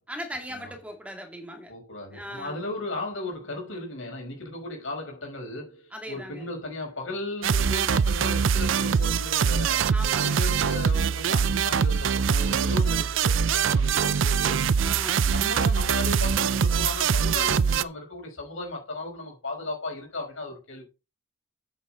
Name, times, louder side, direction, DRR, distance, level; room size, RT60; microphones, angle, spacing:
voice 1, 0.1-1.7 2.1-2.6 5.9-6.5 9.9-10.4 14.8-15.3, equal, 5° right, 2.4 m, -38 dB
voice 2, 1.7-9.9 10.2-14.6 15.2-20.9, left 2 dB, 85° left, 5.7 m, -36 dB
sound 1, 7.4-17.8, right 6 dB, 80° right, 0.5 m, -23 dB
9.0 x 8.9 x 3.9 m
head